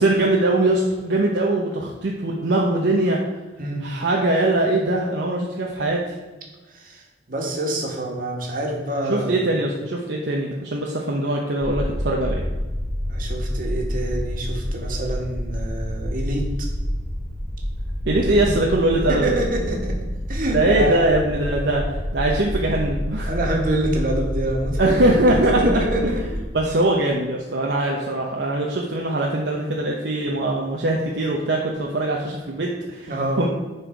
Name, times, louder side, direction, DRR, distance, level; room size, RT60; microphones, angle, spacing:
voice 1, 0.0-3.2 3.8-6.0 9.1-12.4 18.1-19.4 20.5-23.3 24.8-26.1 26.5-33.1 33.4-33.5, right 1 dB, 70° right, -2 dB, 0.9 m, -21 dB
voice 2, 6.7-9.5 13.1-16.5 18.2-18.3 19.1-20.0 20.3-21.2 23.3-25.0 25.3-26.2 33.1-33.4, right 1 dB, 50° right, 0 dB, 1.8 m, -26 dB
sound 1, 11.6-26.5, equal, 10° left, 2.2 m, -28 dB
10.0 x 4.4 x 4.6 m, 1.2 s
head